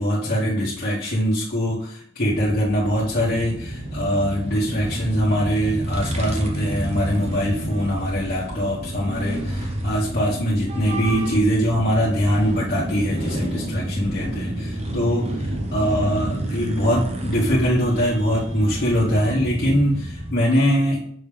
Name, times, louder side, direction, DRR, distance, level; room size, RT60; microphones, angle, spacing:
voice 1, 0.0-21.0, equal, 45° left, -8 dB, 1.4 m, -22 dB
sound 1, 2.3-20.3, right 1 dB, 30° right, 1.0 m, -29 dB
6.1 x 5.3 x 3.4 m, 0.63 s
head